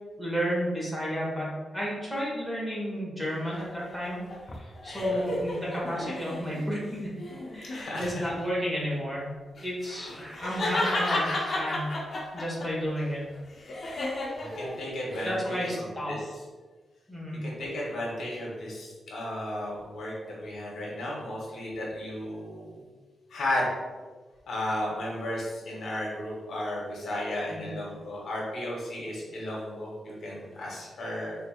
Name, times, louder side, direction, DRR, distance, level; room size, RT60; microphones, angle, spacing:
voice 1, 0.2-4.2 4.5-7.1 7.5-9.3 9.6-11.3 11.5-11.9 12.3-13.2 15.2-16.1 17.1-17.4 27.5-27.7, equal, 5° right, -6 dB, 1.4 m, -32 dB
sound 1, 3.6-6.6 7.2-7.8 9.6-12.7 13.1-15.3, left 1 dB, 50° left, 0.7 m, -32 dB
voice 2, 7.7-8.3 9.9-10.1 14.4-16.3 17.4-22.8 23.3-23.7 24.5-31.4, left 1 dB, 80° left, -4 dB, 1.0 m, -34 dB
3.8 x 3.3 x 2.4 m, 1.4 s
wide cardioid pair, 110°, 0 cm